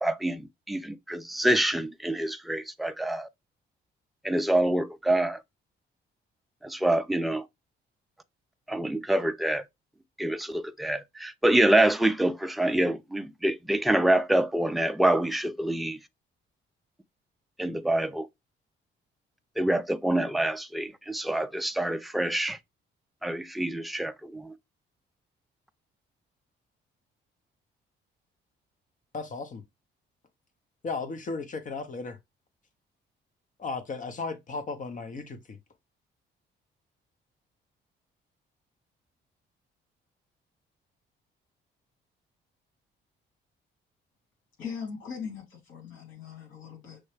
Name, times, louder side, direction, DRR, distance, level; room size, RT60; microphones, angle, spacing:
voice 1, 0.0-3.3 4.2-5.4 6.6-7.4 8.7-9.6 10.2-16.0 17.6-18.3 19.6-22.6 23.2-24.5, right 1 dB, ahead, 0.4 m, -26 dB
voice 2, 29.1-29.6 30.8-32.2 33.6-35.6, left 4 dB, 40° left, 0.9 m, -35 dB
voice 3, 44.6-47.0, left 6 dB, 75° left, 2.6 m, -40 dB
6.1 x 2.2 x 3.2 m
cardioid pair, 90°, 20 cm